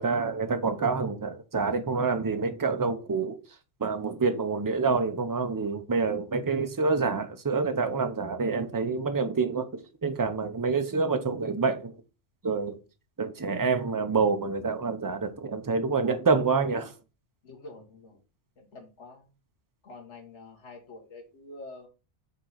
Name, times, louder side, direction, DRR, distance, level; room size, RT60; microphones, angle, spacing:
voice 1, 0.0-3.4 3.8-12.0 12.4-12.8 13.2-16.9, right 4 dB, 20° right, 0.6 m, -27 dB
voice 2, 17.4-18.2 18.6-19.3 19.8-21.9, left 2 dB, 75° left, 1.8 m, -47 dB
5.5 x 3.8 x 5.6 m
omnidirectional pair, 1.2 m